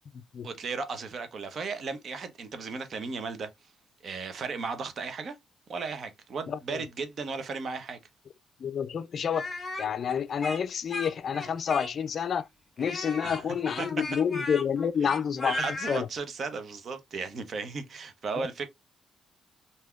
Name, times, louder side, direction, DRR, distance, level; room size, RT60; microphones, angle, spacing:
voice 1, 0.4-3.5 4.0-5.4 5.7-8.0 13.2-13.4 13.8-13.9 15.0-15.2 15.4-18.7, right 4 dB, 55° right, 0.8 m, -35 dB
voice 2, 6.5-6.8 8.6-9.5 9.8-12.5 12.8-15.6 15.9-16.1 18.4-18.5, left 7 dB, 55° left, 0.3 m, -29 dB
Speech, 9.3-12.2 12.8-16.0, left 2 dB, 25° left, 1.8 m, -37 dB
3.4 x 2.7 x 2.3 m
cardioid pair, 90°, 0 cm